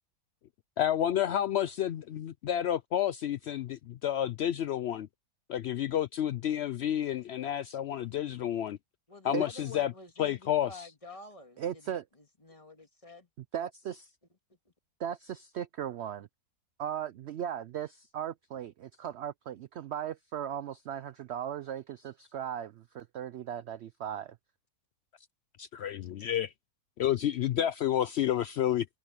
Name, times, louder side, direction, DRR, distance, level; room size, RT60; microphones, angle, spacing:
voice 1, 0.8-5.1 5.5-8.8 9.2-9.9 10.2-10.7 25.6-26.5 27.0-28.9, left 11 dB, 80° left, 0.5 m, -30 dB
voice 2, 9.1-13.3 14.5-14.7, left 3 dB, 20° left, 1.9 m, -50 dB
voice 3, 11.6-12.0 13.5-14.1 15.0-16.3 16.8-24.4, right 9 dB, 70° right, 0.6 m, -37 dB
omnidirectional pair, 1.7 m